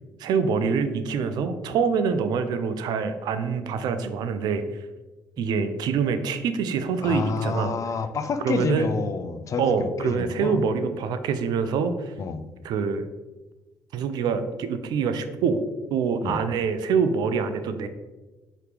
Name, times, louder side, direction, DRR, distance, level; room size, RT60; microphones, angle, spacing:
voice 1, 0.2-4.6 5.4-7.7 8.4-8.9 9.6-12.1 12.6-13.1 13.9-15.6 15.9-17.9, right 5 dB, 70° right, 10 dB, 0.4 m, -25 dB
voice 2, 7.0-10.6 12.2-12.4 16.2-16.4, left 5 dB, 45° left, 10 dB, 0.4 m, -29 dB
4.8 x 3.0 x 3.3 m, 1.2 s
supercardioid pair, 60°, 7 cm